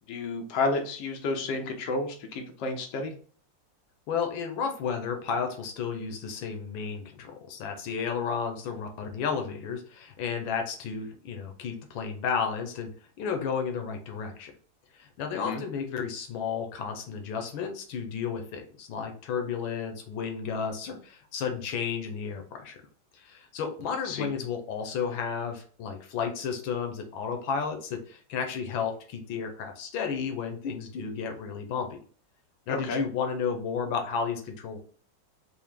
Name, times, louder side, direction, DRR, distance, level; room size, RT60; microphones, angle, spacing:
voice 1, 0.1-3.1 15.3-15.6 24.0-24.3 32.7-33.0, left 3 dB, 70° left, 3 dB, 1.4 m, -31 dB
voice 2, 4.1-12.9 13.2-14.5 14.9-22.8 23.1-32.0 32.7-34.8, left 6 dB, 85° left, 4 dB, 1.6 m, -32 dB
4.6 x 2.1 x 3.4 m, 0.43 s
omnidirectional pair, 2.1 m